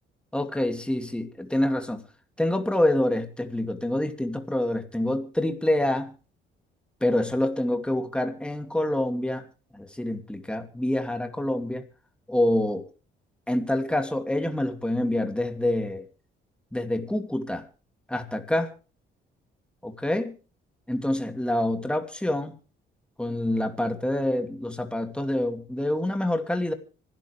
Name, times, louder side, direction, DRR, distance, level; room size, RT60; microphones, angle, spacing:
voice 1, 0.3-2.0 2.4-6.1 7.0-9.4 9.7-11.8 12.3-12.8 13.5-16.1 16.7-17.6 18.1-18.7 19.8-20.3 20.9-22.6 23.2-26.7, left 1 dB, 5° left, 6 dB, 2.6 m, -26 dB
25.5 x 12.5 x 3.4 m, 0.36 s
cardioid pair, 90°, 20 cm